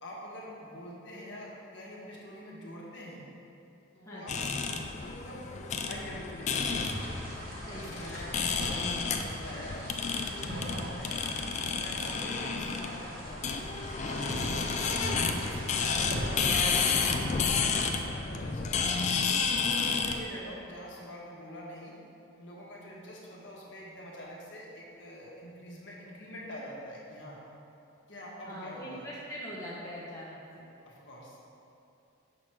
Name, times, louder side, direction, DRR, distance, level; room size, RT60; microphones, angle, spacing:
voice 1, 0.0-3.2 3.9-6.9 7.6-11.2 11.6-13.5 14.1-18.8 19.6-22.0 22.4-27.4 28.1-29.1 30.8-31.4, equal, 60° left, -4 dB, 1.4 m, -45 dB
voice 2, 4.0-4.5 7.6-8.1 28.4-30.7, equal, 15° left, -7 dB, 0.8 m, -43 dB
sound 1, 4.3-20.2, left 5 dB, 35° left, 0.3 m, -31 dB
sound 2, 6.8-17.2, equal, 45° right, 1.2 m, -40 dB
6.0 x 5.8 x 4.7 m, 2.7 s
head